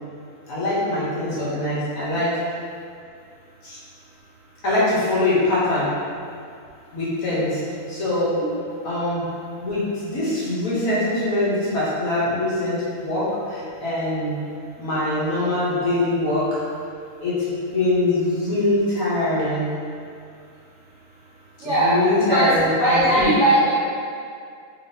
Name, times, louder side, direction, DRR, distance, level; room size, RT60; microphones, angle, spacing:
voice 1, 0.5-2.4 3.6-3.8 4.6-5.9 6.9-7.6 7.9-8.4 8.8-9.2 9.6-14.4 14.8-16.6 17.2-19.7 21.6-23.3, left 2 dB, 65° left, -9 dB, 1.4 m, -23 dB
voice 2, 21.6-21.9 22.3-22.5 22.8-23.7, right 1 dB, 50° right, -12 dB, 1.7 m, -18 dB
3.4 x 3.4 x 2.8 m, 2.3 s
omnidirectional pair, 1.6 m